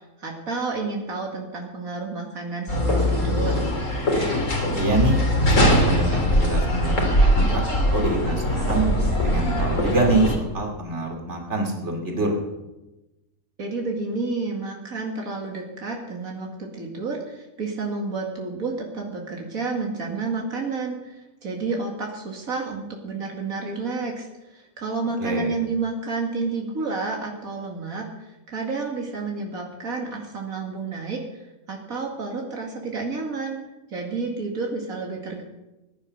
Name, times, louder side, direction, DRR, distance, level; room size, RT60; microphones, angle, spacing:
voice 1, 0.0-3.6 13.6-33.6 33.9-35.4, right 3 dB, 85° right, 0 dB, 2.6 m, -30 dB
sound 1, 2.7-10.4, equal, 65° left, 3.1 m, -21 dB
voice 2, 4.7-5.3 5.6-7.6 7.9-8.9 9.2-12.4 25.2-25.5, right 2 dB, 55° right, 1 dB, 3.2 m, -25 dB
20.0 x 10.5 x 6.6 m, 1.0 s
omnidirectional pair, 1.4 m